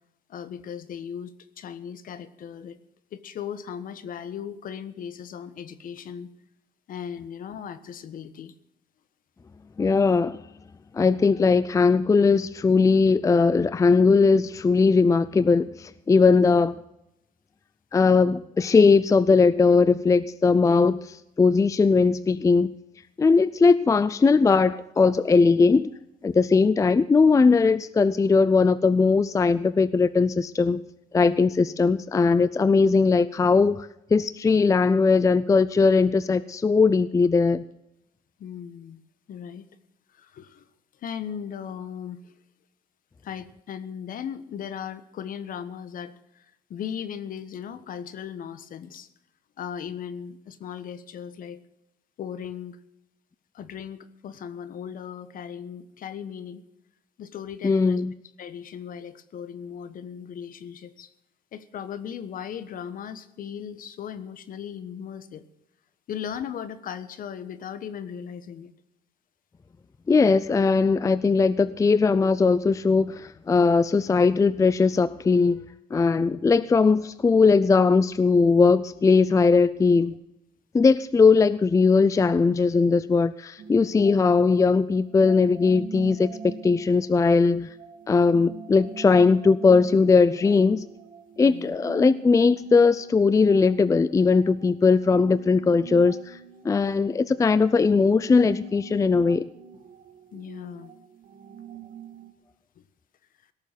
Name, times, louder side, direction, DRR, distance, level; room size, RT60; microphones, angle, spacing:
voice 1, 0.3-2.8 3.1-6.3 6.9-8.5 38.4-39.0 39.3-39.6 40.1-40.7 41.0-42.3 43.2-49.1 49.6-51.6 52.2-52.8 53.5-56.6 57.2-58.0 58.4-61.1 61.5-65.4 66.1-68.7 91.4-91.8 100.3-100.9 102.8-102.9, left 8 dB, 55° left, 14 dB, 1.3 m, -37 dB
voice 2, 9.8-10.4 10.9-16.8 17.9-22.7 23.2-25.9 26.2-30.8 31.1-37.6 57.6-58.1 70.1-75.6 75.9-80.2 80.7-87.7 88.1-90.8 91.4-96.4 96.6-99.4, left 4 dB, 20° left, 16 dB, 0.5 m, -19 dB
sound 1, 83.6-102.3, right 6 dB, 50° right, 1.9 m, -44 dB
18.0 x 6.9 x 9.6 m, 0.83 s
cardioid pair, 110°, 17 cm